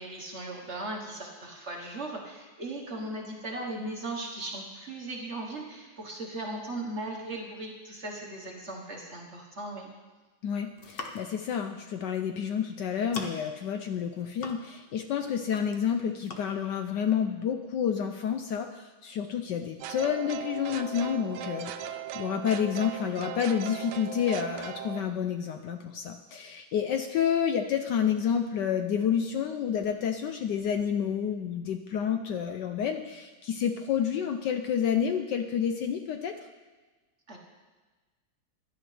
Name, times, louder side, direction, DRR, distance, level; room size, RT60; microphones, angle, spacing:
voice 1, 0.0-9.9 37.3-37.4, right 2 dB, 40° right, 0 dB, 1.4 m, -38 dB
voice 2, 10.4-36.3, left 8 dB, 70° left, 6 dB, 1.1 m, -29 dB
sound 1, 10.6-11.4 12.4-12.6 12.9-13.6 14.0-14.9 15.2-15.9 16.2-16.4, left 2 dB, 45° left, 0.8 m, -42 dB
sound 2, 19.8-25.0, right 9 dB, 85° right, 1.4 m, -38 dB
16.0 x 11.0 x 3.3 m, 1.3 s
omnidirectional pair, 2.2 m